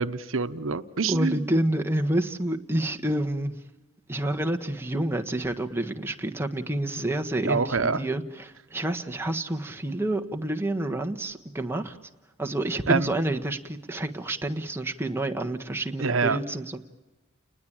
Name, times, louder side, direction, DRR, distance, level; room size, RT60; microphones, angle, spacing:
voice 1, 0.0-1.4 7.4-8.0 12.9-13.1 16.0-16.4, right 4 dB, 85° right, 11 dB, 0.9 m, -25 dB
voice 2, 1.1-3.5 4.1-12.0 12.4-16.8, right 1 dB, 10° right, 5 dB, 1.4 m, -28 dB
30.0 x 20.5 x 8.9 m, 1.2 s
head